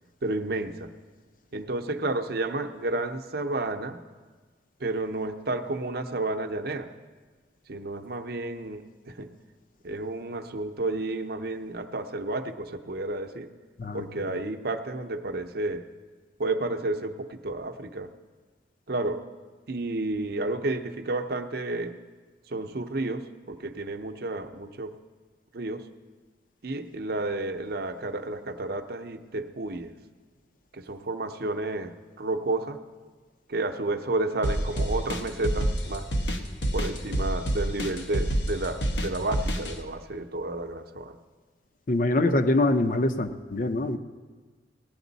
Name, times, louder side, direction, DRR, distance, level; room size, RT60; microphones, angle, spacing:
voice 1, 0.2-0.9 1.5-4.0 4.8-6.9 7.7-9.3 9.8-13.5 13.9-15.8 16.4-18.1 18.9-19.2 19.7-22.0 22.5-24.9 25.5-25.9 26.6-29.9 30.7-32.8 33.5-36.1 36.7-41.2, right 2 dB, 60° right, 7 dB, 0.7 m, -31 dB
sound 1, 34.4-39.7, right 1 dB, 85° left, 1.2 m, -27 dB
voice 2, 41.9-44.0, left 2 dB, 50° left, 8 dB, 0.7 m, -24 dB
17.5 x 11.0 x 4.0 m, 1.4 s
head